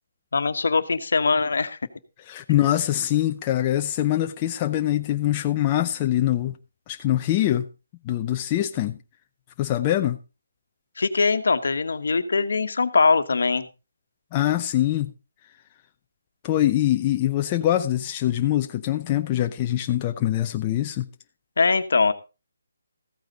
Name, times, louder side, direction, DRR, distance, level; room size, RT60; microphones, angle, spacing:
voice 1, 0.3-1.8 11.0-13.7 21.6-22.1, left 4 dB, 70° left, 1.2 m, -22 dB
voice 2, 2.3-6.5 6.9-7.6 8.0-9.0 9.6-10.2 14.3-15.1 16.4-21.1, left 13 dB, 25° left, 0.5 m, -23 dB
14.5 x 9.1 x 4.0 m
hypercardioid pair, 160°, 0 cm